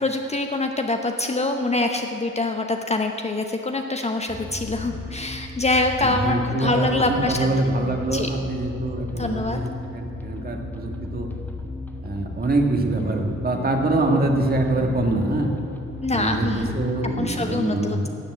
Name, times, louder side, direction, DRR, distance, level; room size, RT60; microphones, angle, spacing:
voice 1, 0.0-7.5 8.1-8.3 9.2-9.6 16.0-16.7 17.2-18.1, left 2 dB, 20° left, 4 dB, 0.8 m, -25 dB
sound 1, 4.3-17.4, left 2 dB, 5° left, 1.2 m, -35 dB
voice 2, 6.0-11.3 12.0-15.5 16.1-18.1, right 2 dB, 30° right, 3 dB, 1.6 m, -24 dB
12.0 x 7.3 x 8.1 m, 2.6 s
cardioid pair, 90°, 30 cm